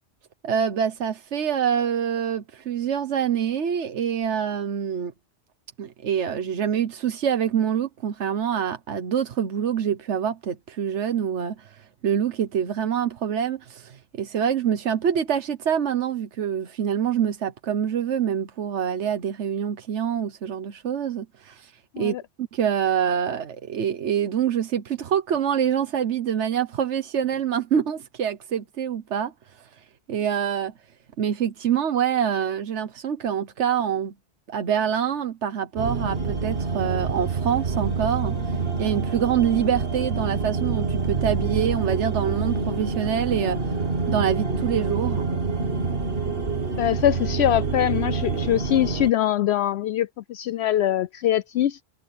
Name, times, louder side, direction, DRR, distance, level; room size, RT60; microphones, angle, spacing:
voice 1, 0.4-5.1 5.8-29.8 30.1-30.7 31.2-34.1 34.5-43.7 44.1-45.3, right 8 dB, 85° right, 1.3 m, -26 dB
sound 1, 35.8-49.1, right 4 dB, 55° right, 1.9 m, -27 dB
voice 2, 46.8-51.8, left 12 dB, 75° left, 0.8 m, -23 dB
omnidirectional pair, 1.1 m